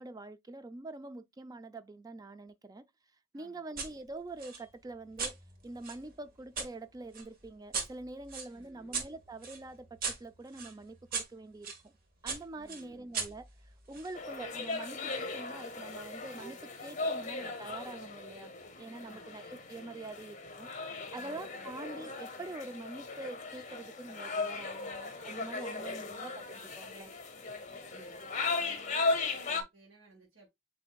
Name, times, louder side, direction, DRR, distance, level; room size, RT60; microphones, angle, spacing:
voice 1, 0.0-2.8 3.3-5.4 5.6-11.9 12.2-13.5 13.9-18.5 18.8-20.7 21.1-27.1, right 2 dB, 20° right, 0.3 m, -45 dB
voice 2, 3.3-3.7 8.5-9.0 12.6-13.1 19.0-19.4 19.7-20.1 21.1-21.7 27.9-28.2 28.5-30.5, right 2 dB, 85° right, 1.3 m, -58 dB
sound 1, 3.8-3.9 4.4-6.7 7.1-11.8 12.3-14.1, right 5 dB, 45° right, 1.1 m, -40 dB
sound 2, 14.2-29.6, left 3 dB, 40° left, 0.8 m, -37 dB
7.5 x 2.7 x 2.2 m
head